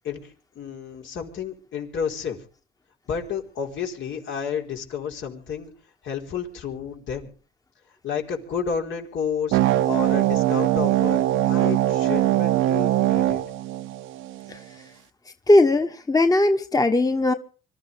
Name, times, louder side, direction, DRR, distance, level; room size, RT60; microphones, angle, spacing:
voice 1, 0.0-2.4 3.1-5.7 6.0-7.3 8.0-13.4, left 7 dB, 75° left, 4.4 m, -31 dB
sound 1, 9.5-14.5, right 14 dB, 90° right, 0.9 m, -21 dB
voice 2, 15.5-17.3, left 2 dB, 20° left, 1.2 m, -19 dB
25.0 x 13.5 x 3.5 m
cardioid pair, 90°, 20 cm